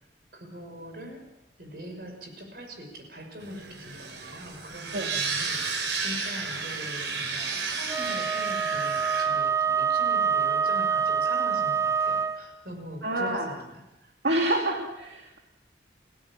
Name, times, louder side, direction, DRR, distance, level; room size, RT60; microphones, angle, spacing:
voice 1, 0.3-1.2 1.6-14.1, equal, 55° right, 3 dB, 6.1 m, -42 dB
sound 1, 3.4-9.2, right 4 dB, 90° right, 4.7 m, -32 dB
Wind instrument woodwind instrument, 7.9-12.4, right 6 dB, 15° right, 0.9 m, -26 dB
voice 2, 13.0-13.5 14.2-15.4, right 1 dB, 70° right, 1 dB, 2.4 m, -27 dB
29.5 x 17.0 x 7.3 m, 0.92 s
head